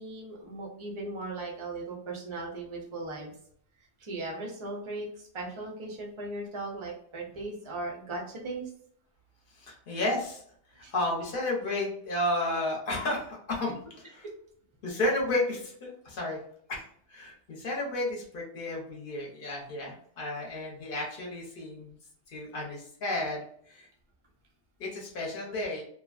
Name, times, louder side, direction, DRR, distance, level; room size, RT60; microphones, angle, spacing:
voice 1, 0.0-3.3 4.0-8.7 10.8-10.9 14.2-14.3, right 2 dB, 45° right, -1 dB, 0.4 m, -38 dB
voice 2, 9.5-10.4 10.7-13.8 14.1-14.3 14.8-16.4 16.7-16.8 17.1-22.0 22.3-23.9 24.8-25.8, left 1 dB, 45° left, -2 dB, 0.9 m, -32 dB
2.9 x 2.2 x 2.4 m, 0.64 s
omnidirectional pair, 1.4 m